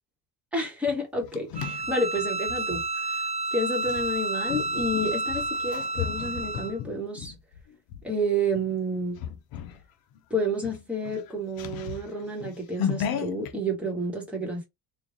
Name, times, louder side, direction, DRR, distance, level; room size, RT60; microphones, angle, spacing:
voice 1, 0.5-2.8 3.1-3.2 3.5-7.3 8.0-9.2 10.3-14.6, right 1 dB, 5° right, 1.1 m, -30 dB
sound 1, 0.9-2.8 3.8-8.0 8.5-8.8 9.1-9.8 10.1-10.2 10.6-13.5, left 8 dB, 60° left, 0.7 m, -35 dB
Bowed string instrument, 1.5-6.8, right 2 dB, 20° right, 0.3 m, -30 dB
3.3 x 2.3 x 3.9 m
cardioid pair, 170°, 41 cm